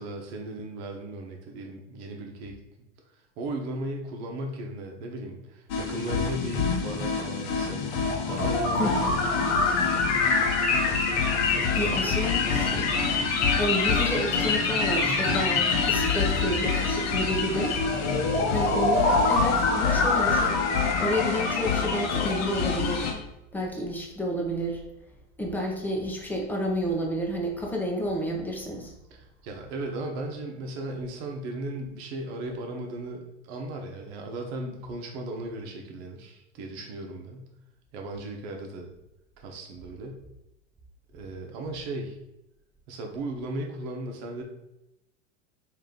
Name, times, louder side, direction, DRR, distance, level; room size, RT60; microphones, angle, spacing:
voice 1, 0.0-2.6 3.4-7.8 8.3-10.2 11.5-12.6 18.3-18.7 29.1-37.5 37.9-38.9 39.4-40.2 41.1-42.2 42.9-44.4, right 2 dB, 60° right, 2 dB, 1.0 m, -37 dB
sound 1, 5.7-23.1, left 4 dB, 45° left, 0.8 m, -25 dB
voice 2, 8.8-9.1 11.8-12.4 12.7-12.9 13.6-17.8 18.5-20.5 21.0-23.1 23.5-24.8 25.4-28.9, equal, 5° left, 0 dB, 0.8 m, -30 dB
3.3 x 2.7 x 3.8 m, 0.87 s
hypercardioid pair, 105°, 35 cm